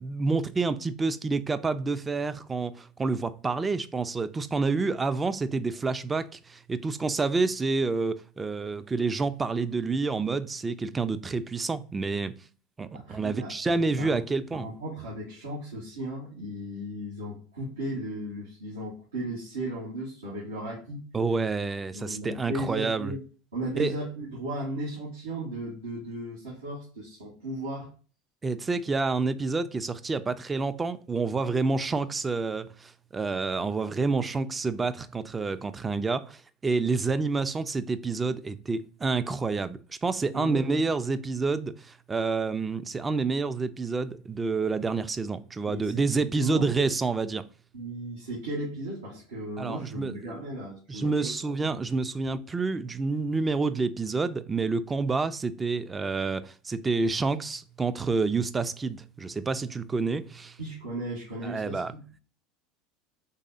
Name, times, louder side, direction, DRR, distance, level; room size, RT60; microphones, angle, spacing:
voice 1, 0.0-12.3 12.8-14.7 21.1-23.1 23.8-23.9 28.4-47.4 49.6-50.4 50.9-60.6 61.4-61.9, right 4 dB, 20° right, 0.4 m, -28 dB
voice 2, 12.9-14.2 14.5-21.0 21.9-23.2 23.5-27.9 40.3-40.6 45.7-46.9 47.7-51.7 60.6-62.2, right 1 dB, 90° right, 1.4 m, -36 dB
4.0 x 3.2 x 2.5 m
hypercardioid pair, 85°, 0 cm